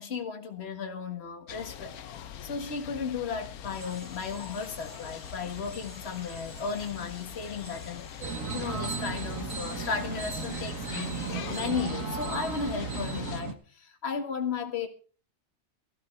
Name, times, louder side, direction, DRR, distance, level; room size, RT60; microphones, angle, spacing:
voice 1, 0.0-2.0 2.4-14.9, left 5 dB, 45° left, 1.9 m, -35 dB
sound 1, 1.5-13.4, left 9 dB, 85° left, 1.3 m, -43 dB
sound 2, 3.6-11.6, right 2 dB, 50° right, 5.3 m, -54 dB
sound 3, 8.2-13.5, right 5 dB, 65° right, 1.8 m, -35 dB
14.5 x 13.5 x 4.5 m
omnidirectional pair, 1.5 m